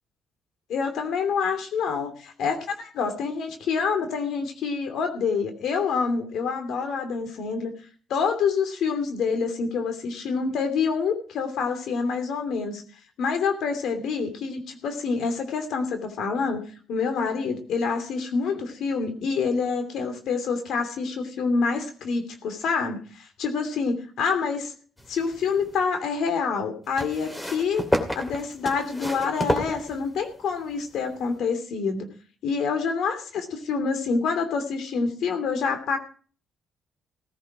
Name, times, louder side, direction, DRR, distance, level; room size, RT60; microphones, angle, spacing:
voice 1, 0.7-7.7 8.1-12.8 13.2-16.6 16.9-24.7 25.1-27.8 28.1-32.1 32.4-36.0, left 5 dB, 75° left, 6 dB, 2.8 m, -27 dB
sound 1, 25.0-25.8 27.0-30.4 31.3-31.4, equal, 10° left, 2.8 m, -30 dB
17.5 x 10.5 x 5.0 m, 0.42 s
cardioid pair, 90°, 0 cm